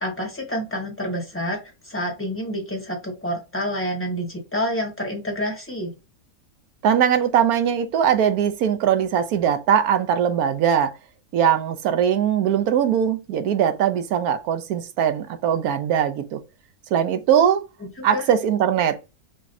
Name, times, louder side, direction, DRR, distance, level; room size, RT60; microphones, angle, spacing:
voice 1, 0.0-5.9 18.0-18.2, equal, 10° left, 1.4 m, -28 dB
voice 2, 6.8-10.9 11.3-16.4 16.9-17.6 18.0-19.1, right 9 dB, 80° right, 1.2 m, -20 dB
5.9 x 3.1 x 2.7 m
omnidirectional pair, 1.6 m